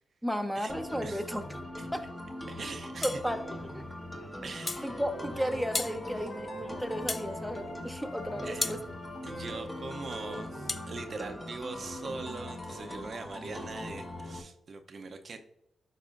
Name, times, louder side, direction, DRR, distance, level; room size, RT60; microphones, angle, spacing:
voice 1, 0.2-1.4 1.9-2.1 3.0-3.9 4.8-8.8, equal, ahead, 6 dB, 0.9 m, -34 dB
sound 1, 0.7-14.4, left 1 dB, 15° left, 1.3 m, -41 dB
voice 2, 2.5-3.2 4.4-5.0 5.4-5.5 6.2-6.3 8.4-8.7 9.2-15.4, right 4 dB, 50° right, 6 dB, 0.6 m, -42 dB
sound 2, 3.0-3.3 4.7-4.9 5.7-6.0 7.1-7.3 8.6-8.8 10.7-10.9, left 3 dB, 35° left, 0.4 m, -33 dB
Wind instrument woodwind instrument, 4.6-11.4, left 1 dB, 70° left, 1.3 m, -46 dB
12.0 x 4.8 x 2.5 m, 0.80 s
cardioid pair, 75°, 0 cm